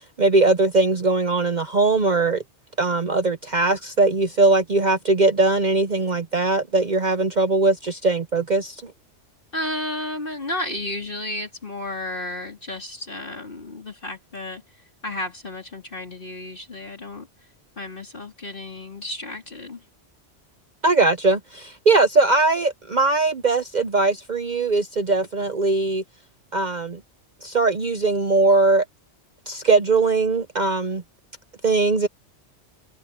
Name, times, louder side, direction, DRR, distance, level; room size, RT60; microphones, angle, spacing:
voice 1, 0.2-2.4 2.8-8.9 20.8-26.0 26.5-27.0 27.4-28.8 29.5-31.0 31.6-32.1, right 3 dB, 45° right, 0.8 m, -20 dB
voice 2, 9.5-14.6 15.0-17.3 17.8-19.8, left 1 dB, 50° left, 3.6 m, -32 dB
omnidirectional pair, 1.2 m